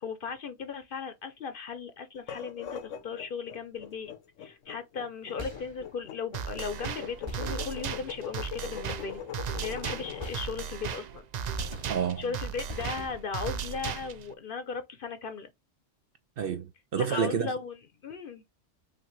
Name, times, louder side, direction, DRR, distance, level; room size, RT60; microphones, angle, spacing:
voice 1, 0.0-4.1 4.4-9.2 9.6-11.2 12.2-15.5 17.0-18.4, left 5 dB, 55° left, 0.7 m, -37 dB
sound 1, 2.2-10.4, left 9 dB, 85° left, 1.0 m, -41 dB
sound 2, 5.4-6.1 7.2-8.2 8.9-9.5 10.2-11.0 11.6-12.3 12.7-13.5, equal, 25° right, 0.9 m, -43 dB
sound 3, 6.3-14.3, right 7 dB, 85° right, 0.3 m, -36 dB
voice 2, 11.9-12.2 16.4-17.5, right 7 dB, 60° right, 0.7 m, -29 dB
5.8 x 2.8 x 3.1 m
omnidirectional pair, 1.3 m